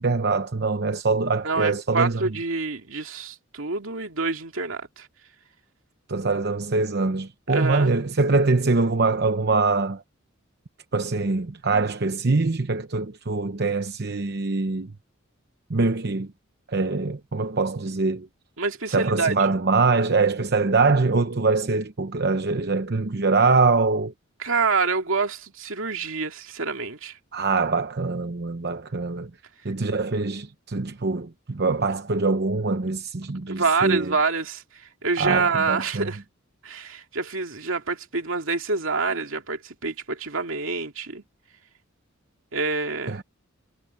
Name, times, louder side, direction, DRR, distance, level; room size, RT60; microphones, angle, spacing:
voice 1, 0.0-2.3 6.1-10.0 10.9-14.9 15.7-16.3 16.7-18.3 18.9-24.1 27.3-29.3 29.6-34.1 35.2-36.1 43.1-43.2, right 3 dB, 50° right, 0.9 m, -23 dB
voice 2, 1.4-5.1 7.5-7.9 11.7-11.8 18.6-19.3 24.4-27.2 33.5-36.2 36.6-41.2 42.5-43.2, right 4 dB, 75° right, 2.4 m, -27 dB
head